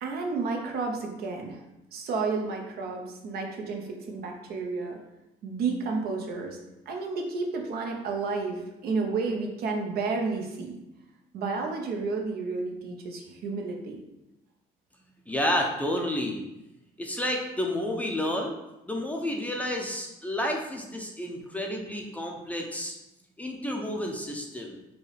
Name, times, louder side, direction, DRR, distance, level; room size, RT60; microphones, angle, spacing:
voice 1, 0.0-1.6 1.9-5.0 5.4-6.6 6.9-10.8 11.3-14.0, right 4 dB, 65° right, 2 dB, 0.8 m, -31 dB
voice 2, 15.3-16.4 17.0-18.5 18.9-22.9 23.4-24.8, left 1 dB, 10° left, 1 dB, 0.5 m, -30 dB
4.6 x 2.6 x 3.3 m, 0.93 s
cardioid pair, 110°, 17 cm